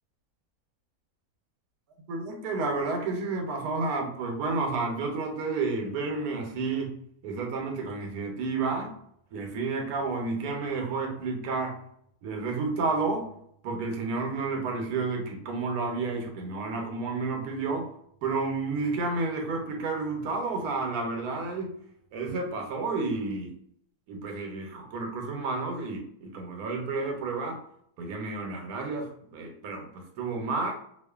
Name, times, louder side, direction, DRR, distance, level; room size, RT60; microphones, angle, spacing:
voice 1, 2.1-7.0 7.2-8.9 9.3-11.8 12.2-13.3 13.6-17.9 18.2-21.7 22.1-23.5 24.1-27.6 28.0-29.9 30.2-30.7, right 3 dB, 85° right, 2 dB, 1.1 m, -31 dB
2.5 x 2.3 x 2.2 m, 0.70 s
omnidirectional pair, 1.6 m